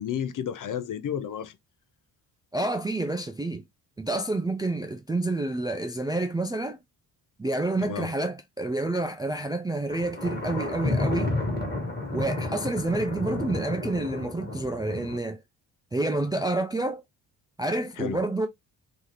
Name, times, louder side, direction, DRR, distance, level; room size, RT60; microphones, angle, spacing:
voice 1, 0.0-1.6 7.8-8.1 18.0-18.2, left 8 dB, 45° left, 0.6 m, -32 dB
voice 2, 2.5-3.6 4.0-6.8 7.4-11.3 12.1-15.4 15.9-17.0 17.6-18.5, right 2 dB, 10° right, 0.3 m, -28 dB
Thunder, 9.9-15.2, left 2 dB, 20° left, 1.6 m, -31 dB
2.8 x 2.4 x 3.2 m
supercardioid pair, 55°, 45 cm